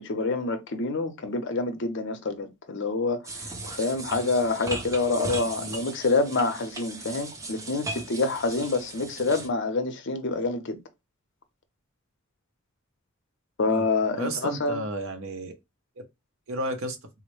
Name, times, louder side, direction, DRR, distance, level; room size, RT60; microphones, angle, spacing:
voice 1, 0.0-10.8 13.6-14.8, left 3 dB, 55° left, 0.6 m, -27 dB
sound 1, 3.2-9.5, right 2 dB, 15° right, 0.5 m, -37 dB
voice 2, 14.2-15.5 16.0-16.1 16.5-17.0, right 1 dB, 70° right, 0.8 m, -32 dB
3.7 x 2.1 x 3.0 m
head